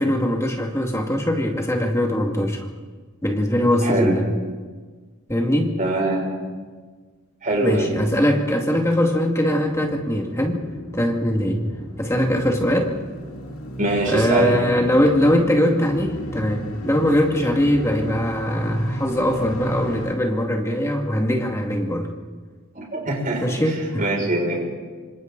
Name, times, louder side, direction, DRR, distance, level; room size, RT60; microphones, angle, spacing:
voice 1, 0.0-2.7 3.2-4.3 5.3-5.8 7.6-10.6 10.9-11.7 12.0-12.9 14.1-22.1 23.4-24.1, equal, 15° left, 1 dB, 2.3 m, -21 dB
voice 2, 3.8-4.2 5.8-6.2 7.4-7.9 13.8-14.6 22.7-23.4 24.0-24.6, right 2 dB, 40° right, -1 dB, 6.3 m, -22 dB
sound 1, 9.1-20.2, equal, 85° left, 2.7 m, -34 dB
27.0 x 26.0 x 4.1 m, 1.4 s
head